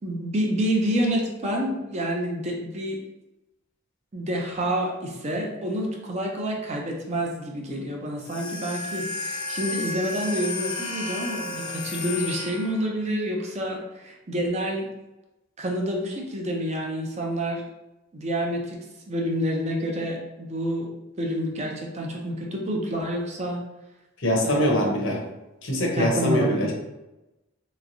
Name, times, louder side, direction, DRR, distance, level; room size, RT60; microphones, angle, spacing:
voice 1, 0.0-3.0 4.1-14.9 15.6-17.6 18.1-18.8 19.1-20.9 21.2-23.6 24.4-24.8 25.9-26.7, equal, 30° right, -1 dB, 0.5 m, -28 dB
sound 1, 8.2-13.0, left 3 dB, 85° left, 0.8 m, -33 dB
voice 2, 24.2-25.2 25.6-26.7, equal, 60° left, -1 dB, 0.7 m, -23 dB
3.4 x 3.0 x 2.5 m, 0.98 s
head